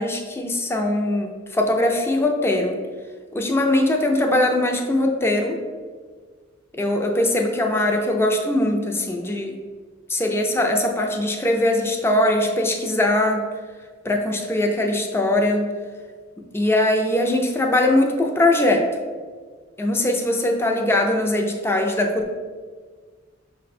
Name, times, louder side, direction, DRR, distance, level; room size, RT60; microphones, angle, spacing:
voice 1, 0.0-2.7 3.3-5.6 6.7-9.6 10.1-13.4 14.0-15.7 16.5-18.9 19.8-22.3, left 1 dB, 10° left, 2 dB, 0.4 m, -21 dB
5.8 x 2.2 x 4.1 m, 1.6 s
head